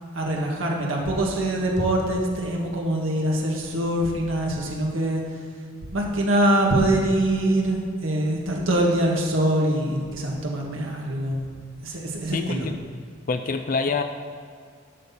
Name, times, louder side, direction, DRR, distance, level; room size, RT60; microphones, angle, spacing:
voice 1, 0.1-5.2 5.9-11.4 11.8-12.7, right 1 dB, 80° right, -1 dB, 1.7 m, -24 dB
voice 2, 12.3-12.7 13.3-14.0, left 4 dB, 40° left, 7 dB, 0.4 m, -26 dB
12.0 x 4.1 x 7.1 m, 2.1 s
head